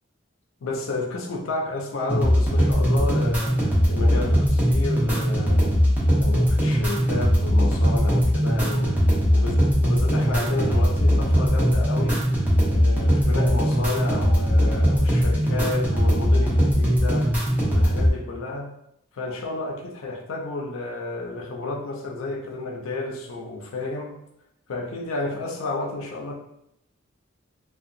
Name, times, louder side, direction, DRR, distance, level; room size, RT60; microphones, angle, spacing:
voice 1, 0.6-3.5 3.9-5.7 6.2-9.0 9.3-9.5 9.8-12.2 12.7-17.3 17.7-18.7 19.1-24.1 24.7-26.3, left 2 dB, 85° left, 0 dB, 0.5 m, -31 dB
sound 1, 2.1-18.1, equal, 10° right, 0.7 m, -20 dB
2.7 x 2.2 x 2.5 m, 0.80 s
head